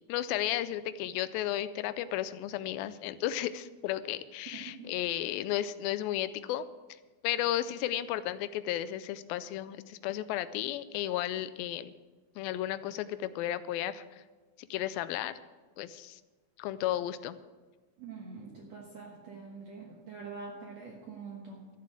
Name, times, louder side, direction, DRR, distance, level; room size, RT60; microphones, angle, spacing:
voice 1, 0.1-6.7 7.2-11.9 12.4-14.0 14.6-15.3 15.8-16.2 16.6-17.4, left 12 dB, 85° left, 14 dB, 2.3 m, -33 dB
voice 2, 18.0-21.7, right 4 dB, 55° right, -1 dB, 2.1 m, -45 dB
13.0 x 7.5 x 7.5 m, 1.3 s
omnidirectional pair, 4.2 m